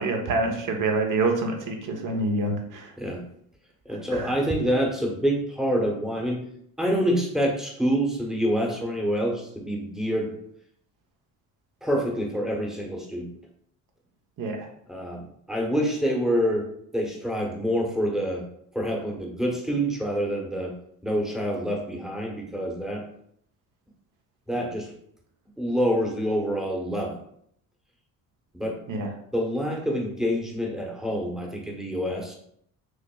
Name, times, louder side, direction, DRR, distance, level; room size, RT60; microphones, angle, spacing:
voice 1, 0.0-2.9 3.9-4.4 14.4-14.7 28.9-29.1, right 2 dB, 50° right, 3 dB, 0.9 m, -27 dB
voice 2, 3.9-6.4 6.8-10.3 11.8-13.3 14.9-16.7 16.9-18.5 18.7-20.8 21.0-23.1 24.5-24.9 25.6-27.2 28.5-28.8 29.3-32.3, equal, ahead, 0 dB, 1.0 m, -26 dB
6.1 x 2.0 x 2.3 m, 0.68 s
supercardioid pair, 75°, 40 cm